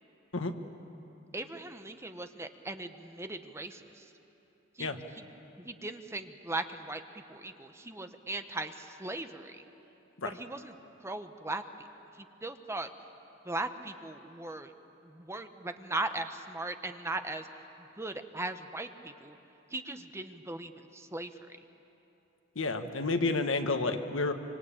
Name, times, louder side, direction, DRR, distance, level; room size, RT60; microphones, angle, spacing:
voice 1, 1.3-4.1 4.7-5.3 5.6-7.0 7.3-9.6 10.2-10.7 11.0-11.9 12.1-12.9 13.4-14.7 15.0-17.5 17.8-19.4 19.7-21.4, right 2 dB, 15° right, 7 dB, 1.0 m, -38 dB
voice 2, 22.5-24.3, left 3 dB, 80° left, 7 dB, 1.5 m, -30 dB
26.0 x 24.5 x 8.9 m, 3.0 s
head